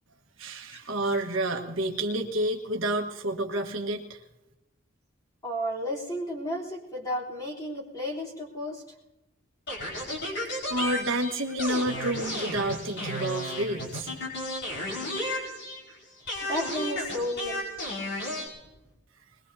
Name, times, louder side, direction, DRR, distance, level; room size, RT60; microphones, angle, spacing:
voice 1, 0.4-4.2 10.7-14.1, right 1 dB, 70° right, 3 dB, 1.5 m, -29 dB
voice 2, 5.4-8.8 10.8-11.2 16.4-17.7, equal, 20° left, -5 dB, 3.5 m, -33 dB
sound 1, 9.7-15.9 16.3-18.5, left 1 dB, 60° left, 4.9 m, -33 dB
21.5 x 21.0 x 2.8 m, 0.98 s
head